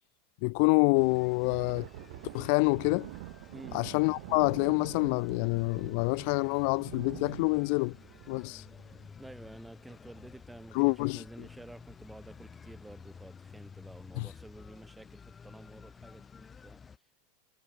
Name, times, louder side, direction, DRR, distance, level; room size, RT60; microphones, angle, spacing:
voice 1, 0.4-1.9 2.3-3.1 3.7-7.9 8.3-8.6 10.7-11.2 14.2-14.3, left 35 dB, 60° left, 0.5 m, -27 dB
sound 1, 0.9-17.0, left 6 dB, 20° left, 2.3 m, -52 dB
Thunder, 1.3-10.3 10.7-10.9 11.3-11.5 12.1-12.6, right 24 dB, 65° right, 7.0 m, -47 dB
voice 2, 3.5-3.8 9.2-16.8, right 2 dB, 5° right, 4.6 m, -50 dB
supercardioid pair, 115°, 0 cm